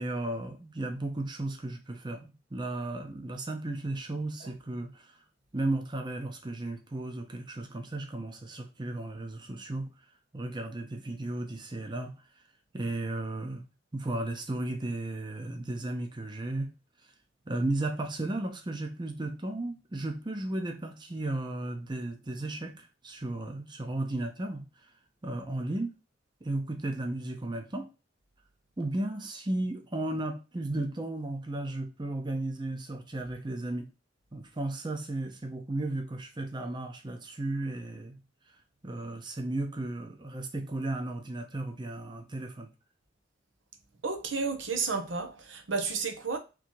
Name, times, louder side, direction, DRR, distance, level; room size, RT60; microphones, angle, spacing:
voice 1, 0.0-5.1 5.5-9.9 10.3-12.1 12.7-13.6 13.9-16.7 17.5-24.6 25.2-25.9 26.4-27.9 28.8-33.9 34.3-38.2 38.8-42.7, right 2 dB, 25° right, 0.7 m, -34 dB
voice 2, 44.0-46.4, right 4 dB, 80° right, 0.8 m, -32 dB
3.8 x 2.9 x 4.6 m
head